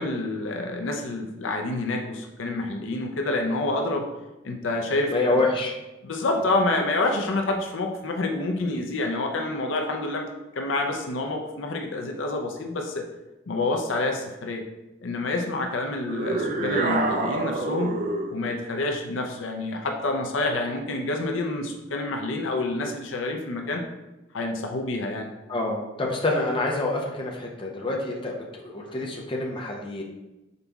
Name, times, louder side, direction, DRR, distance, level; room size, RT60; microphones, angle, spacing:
voice 1, 0.0-4.1 4.4-5.4 6.0-10.3 10.6-13.0 13.5-14.6 15.0-18.0 18.3-23.8 24.3-25.3, left 2 dB, 80° left, 2 dB, 0.5 m, -28 dB
voice 2, 5.1-5.7 16.2-16.3 25.5-30.0, left 2 dB, 25° left, -1 dB, 0.7 m, -27 dB
sound 1, 16.1-18.4, right 2 dB, 45° right, 0.4 m, -26 dB
5.3 x 4.0 x 2.3 m, 1.0 s
head